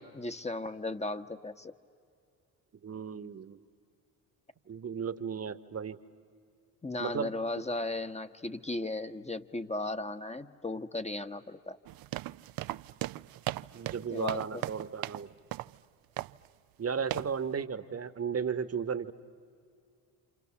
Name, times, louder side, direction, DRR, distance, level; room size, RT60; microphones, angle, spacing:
voice 1, 0.0-1.7 6.8-11.8 14.1-14.6, left 2 dB, 15° left, 9 dB, 1.1 m, -36 dB
voice 2, 2.8-3.6 4.7-6.0 7.0-7.3 13.7-15.3 16.8-19.1, right 6 dB, 35° right, 14 dB, 1.3 m, -34 dB
sound 1, 11.9-15.2 15.5-15.8 16.2-16.5 17.1-17.4, right 15 dB, 55° right, 0.6 m, -37 dB
29.5 x 27.5 x 7.2 m, 2.3 s
hypercardioid pair, 50°, 43 cm